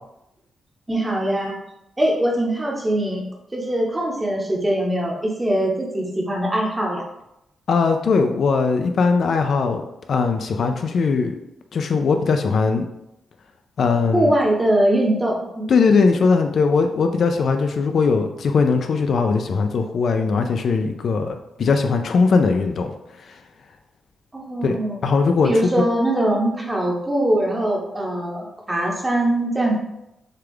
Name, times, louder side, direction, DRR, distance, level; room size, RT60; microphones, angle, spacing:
voice 1, 0.9-1.6 2.0-3.2 3.5-7.0 14.1-15.7 24.3-25.0 25.4-29.8, right 1 dB, 15° right, -1 dB, 0.8 m, -22 dB
voice 2, 7.7-11.3 11.7-12.9 13.8-14.3 15.7-22.9 23.2-23.4 24.6-24.8 25.0-25.7, left 4 dB, 50° left, 6 dB, 0.3 m, -20 dB
6.5 x 2.4 x 3.5 m, 0.87 s
wide cardioid pair, 165°, 0 cm